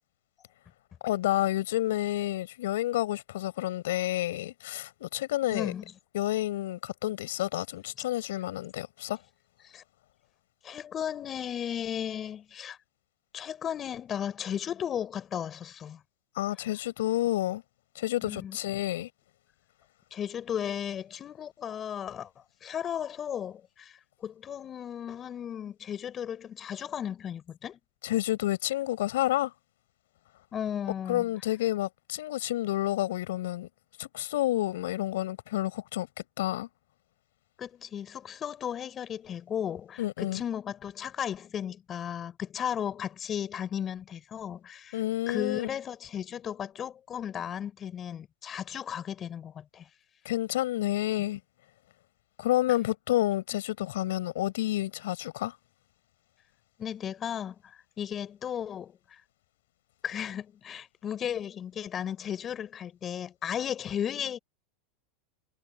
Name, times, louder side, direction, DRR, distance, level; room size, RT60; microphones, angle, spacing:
voice 1, 1.0-5.7 6.1-9.2 16.4-17.6 17.9-19.1 28.0-29.5 31.1-33.7 34.0-36.1 36.4-36.7 40.0-40.4 44.9-45.7 50.2-51.4 52.4-55.5, left 14 dB, 80° left, 6.2 m, -29 dB
voice 2, 5.5-5.9 9.6-9.8 10.6-12.8 13.3-16.0 18.2-18.6 20.1-22.3 22.6-23.9 24.2-27.8 30.5-31.3 37.6-45.0 45.3-49.9 56.8-59.0 60.0-64.4, left 9 dB, 25° left, 7.5 m, -35 dB
supercardioid pair, 135°, 0 cm